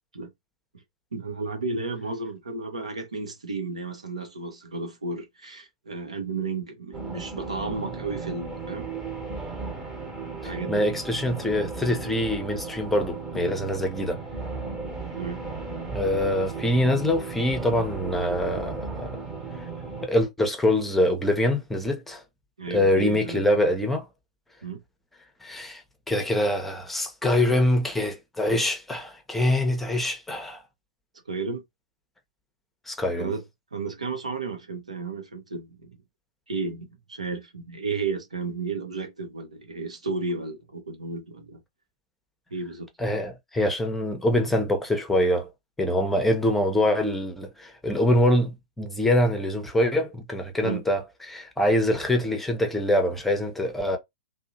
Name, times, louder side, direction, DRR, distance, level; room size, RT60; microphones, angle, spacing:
voice 1, 1.1-8.9 10.4-10.9 15.2-15.4 22.6-23.5 24.6-24.8 31.3-31.6 33.2-33.4 33.7-36.0 36.5-41.6 42.5-42.9 50.6-50.8, right 4 dB, 85° right, 0.8 m, -33 dB
sound 1, 6.9-20.1, right 4 dB, 15° right, 1.0 m, -35 dB
voice 2, 10.4-14.2 15.9-19.1 20.0-22.2 22.7-24.1 25.4-25.8 26.1-30.6 32.9-33.3 43.0-45.5 45.8-54.0, left 1 dB, 5° left, 0.6 m, -24 dB
2.7 x 2.1 x 2.6 m
figure-of-eight pair, 105°, 3 cm